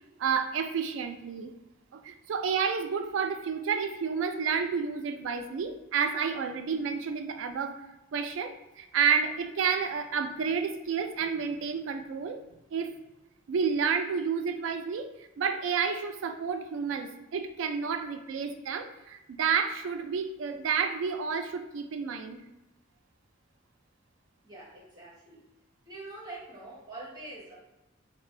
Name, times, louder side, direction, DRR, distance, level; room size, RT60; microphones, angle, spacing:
voice 1, 0.2-1.5 1.9-7.8 8.1-12.4 12.7-12.9 13.5-22.4, right 6 dB, 90° right, 7 dB, 0.3 m, -30 dB
voice 2, 24.4-25.4 25.8-27.6, right 2 dB, 20° right, -6 dB, 0.8 m, -44 dB
2.5 x 2.1 x 3.1 m, 0.97 s
head